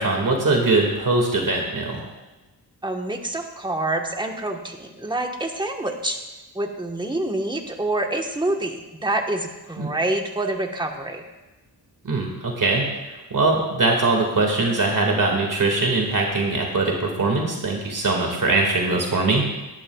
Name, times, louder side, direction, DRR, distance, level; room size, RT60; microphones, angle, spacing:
voice 1, 0.0-2.0 9.8-9.9 12.0-19.5, right 3 dB, 50° right, 0 dB, 2.1 m, -22 dB
voice 2, 2.8-6.2 6.5-11.2, right 2 dB, 10° right, 3 dB, 1.3 m, -27 dB
18.5 x 11.0 x 2.4 m, 1.1 s
wide cardioid pair, 100°, 40 cm